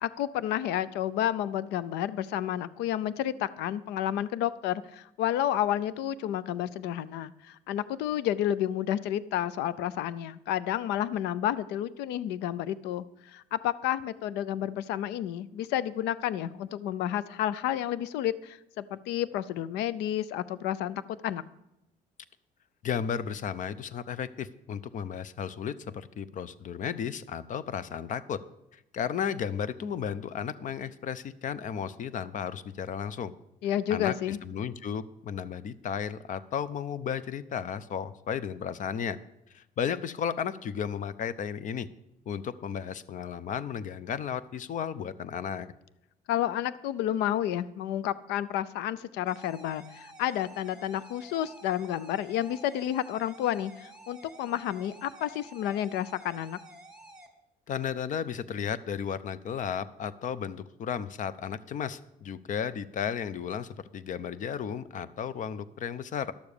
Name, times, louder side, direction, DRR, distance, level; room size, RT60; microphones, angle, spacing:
voice 1, 0.0-21.4 33.6-34.4 46.3-56.6, left 11 dB, 90° left, 17 dB, 0.5 m, -30 dB
voice 2, 22.8-28.4 28.7-33.3 33.9-39.2 39.5-41.9 42.3-45.7 57.7-66.3, left 8 dB, 50° left, 16 dB, 0.7 m, -34 dB
sound 1, 49.3-57.3, right 1 dB, 5° right, 1.9 m, -51 dB
11.5 x 7.0 x 6.7 m, 0.87 s
cardioid pair, 110°, 17 cm